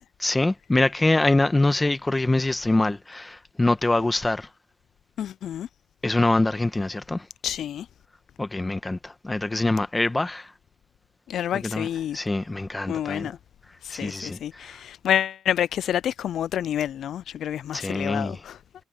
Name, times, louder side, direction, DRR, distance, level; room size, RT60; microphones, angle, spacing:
voice 1, 0.2-4.5 6.0-7.3 8.4-10.5 11.6-11.9 12.1-13.3 13.9-14.8 17.7-18.4, left 2 dB, 15° left, 1.4 m, -24 dB
voice 2, 5.2-5.7 7.4-7.9 11.3-12.2 12.9-13.4 13.8-18.6, left 10 dB, 70° left, 0.3 m, -28 dB
cardioid pair, 90°, 0 cm